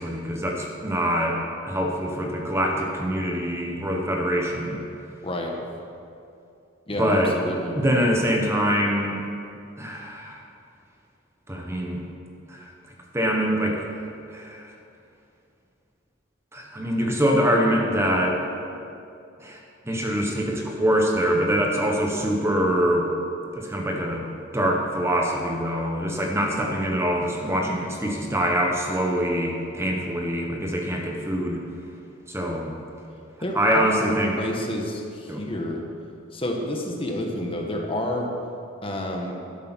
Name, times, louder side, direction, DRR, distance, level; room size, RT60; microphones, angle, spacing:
voice 1, 0.0-1.4 1.7-4.8 6.9-7.4 7.8-9.2 9.8-10.4 11.5-12.0 12.5-12.7 13.1-13.8 14.3-14.7 16.5-18.4 19.4-19.6 19.9-23.1 23.5-24.2 24.5-31.6 32.3-32.7 33.5-34.4 35.3-35.4, equal, 15° right, 0 dB, 1.1 m, -24 dB
voice 2, 6.9-7.8 33.4-35.8 36.3-38.3 38.8-39.3, left 1 dB, 25° left, 1 dB, 1.1 m, -29 dB
12.0 x 8.4 x 6.1 m, 2.6 s
head